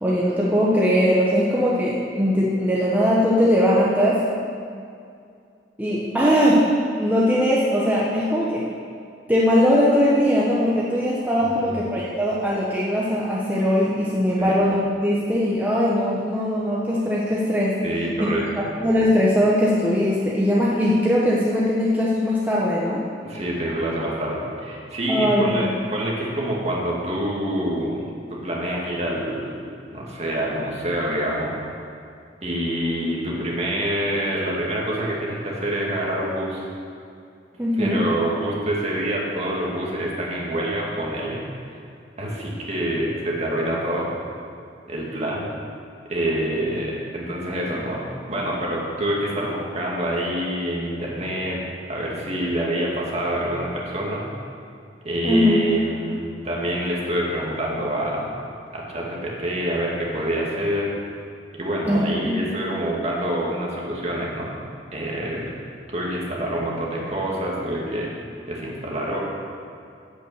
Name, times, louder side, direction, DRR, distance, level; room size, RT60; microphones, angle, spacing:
voice 1, 0.0-4.2 5.8-6.7 7.0-8.6 9.3-17.8 18.8-23.0 25.1-25.7 37.6-38.0 55.2-55.5 61.8-62.3, equal, 10° right, -6 dB, 1.0 m, -20 dB
voice 2, 17.8-18.6 23.2-28.0 28.3-29.6 29.9-31.5 32.4-36.6 37.8-41.4 42.2-44.1 44.9-45.5 46.1-48.0 48.3-54.2 55.0-58.3 58.7-60.9 61.6-64.5 64.9-65.5 65.9-68.1 68.5-69.2, right 1 dB, 40° right, -4 dB, 2.2 m, -26 dB
8.5 x 8.5 x 6.6 m, 2.4 s
head